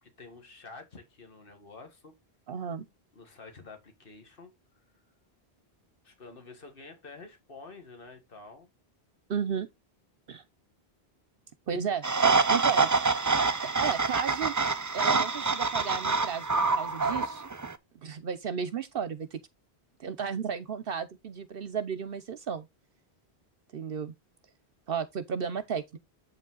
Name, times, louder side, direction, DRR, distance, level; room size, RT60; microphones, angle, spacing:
voice 1, 0.0-2.2 3.1-4.5 4.9-5.0 6.0-8.7, left 3 dB, 55° left, 2.0 m, -49 dB
voice 2, 2.5-2.9 9.3-9.7 10.3-10.4 11.7-12.0 12.5-12.9 13.8-14.5 14.9-17.5 18.0-19.4 20.0-22.7 23.7-24.1 24.9-26.0, right 7 dB, 65° right, 0.9 m, -33 dB
sound 1, 12.0-17.7, right 4 dB, 30° right, 0.3 m, -26 dB
7.9 x 5.1 x 3.8 m
omnidirectional pair, 1.1 m